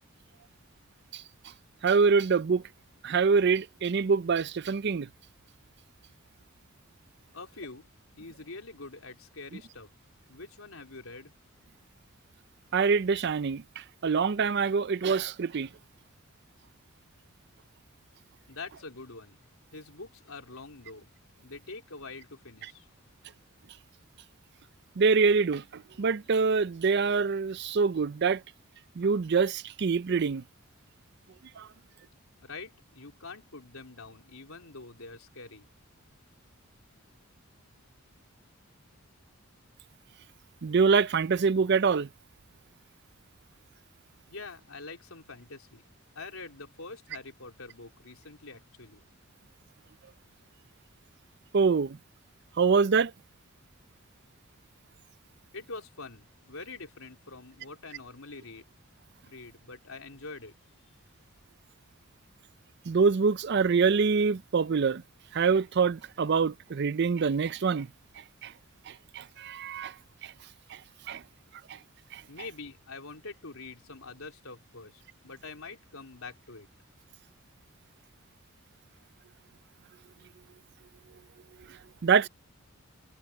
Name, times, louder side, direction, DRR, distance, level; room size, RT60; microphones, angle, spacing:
voice 1, 1.8-2.6 3.0-5.1 12.7-15.7 25.0-28.4 29.0-30.4 31.6-31.7 40.6-42.1 51.5-52.0 52.6-53.1 62.9-65.0 65.3-67.9 68.2-68.5 68.9-69.9 70.2-70.3 70.7-70.8 71.1-71.2 71.7-71.8 72.1-72.2 81.7-82.3, right 5 dB, 50° right, 0.5 m, -25 dB
voice 2, 7.3-7.9 8.2-9.9 10.3-11.3 18.5-19.4 19.7-21.1 21.4-22.9 32.4-35.7 44.3-45.8 46.2-49.0 55.5-58.6 59.3-60.5 72.3-76.7, left 3 dB, 80° left, 3.6 m, -45 dB
head